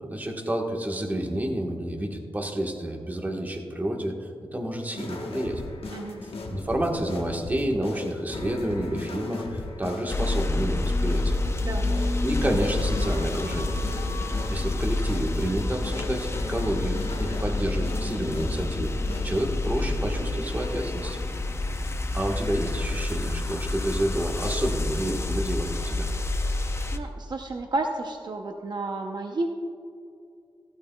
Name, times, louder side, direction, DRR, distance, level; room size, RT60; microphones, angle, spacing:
voice 1, 0.0-5.6 6.5-11.4 12.2-13.8 14.5-18.9 19.2-21.2 22.1-26.1, right 1 dB, 20° right, 0 dB, 1.3 m, -29 dB
sound 1, 5.0-19.6, left 2 dB, 80° left, 1.1 m, -37 dB
voice 2, 5.9-6.2 11.6-11.9 26.9-29.5, right 2 dB, 50° right, 3 dB, 0.6 m, -31 dB
sound 2, 10.1-27.0, left 2 dB, 30° left, 0.5 m, -28 dB
15.0 x 12.5 x 2.3 m, 2.5 s
wide cardioid pair, 130°, 10 cm